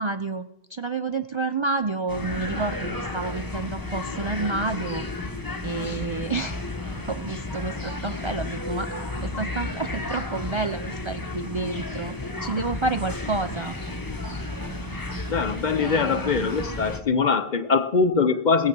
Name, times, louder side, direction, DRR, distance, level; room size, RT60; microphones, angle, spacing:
voice 1, 0.0-5.0 5.6-6.6 7.0-8.9 9.2-12.1 12.4-13.8 15.8-16.5, right 3 dB, 45° right, 9 dB, 0.4 m, -29 dB
sound 1, 2.1-17.0, left 2 dB, 20° left, 1.1 m, -32 dB
voice 2, 15.3-18.7, left 5 dB, 50° left, 11 dB, 0.8 m, -22 dB
18.0 x 7.5 x 6.0 m, 0.86 s
omnidirectional pair, 1.1 m